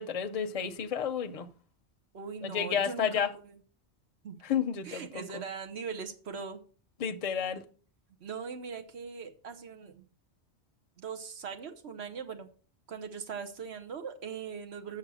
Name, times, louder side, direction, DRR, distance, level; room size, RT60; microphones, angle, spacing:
voice 1, 0.0-1.5 2.4-3.3 4.4-5.4 7.0-7.6, left 7 dB, 40° left, 0.6 m, -31 dB
voice 2, 2.1-3.5 4.2-4.4 4.8-6.6 8.2-10.0 11.0-12.5 12.9-15.0, right 6 dB, 70° right, 1.3 m, -40 dB
7.1 x 6.5 x 6.3 m
omnidirectional pair, 1.1 m